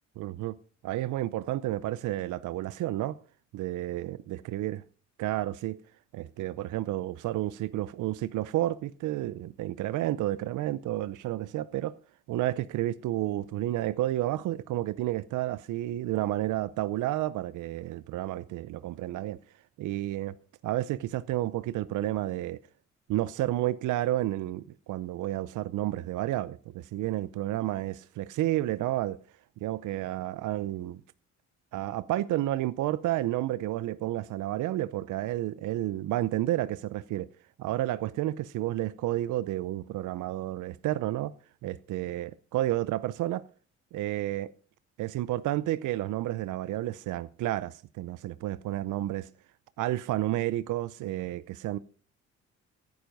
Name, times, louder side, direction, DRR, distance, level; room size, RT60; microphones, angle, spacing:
voice 1, 0.2-0.6 0.8-3.2 3.5-4.8 5.2-5.8 6.1-12.0 12.3-19.4 19.8-20.3 20.6-22.6 23.1-29.2 29.6-31.0 31.7-37.3 37.6-41.3 41.6-43.4 43.9-44.5 45.0-49.3 49.8-51.8, right 14 dB, 80° right, 0.6 m, -31 dB
15.0 x 9.4 x 5.3 m
cardioid pair, 90°, 30 cm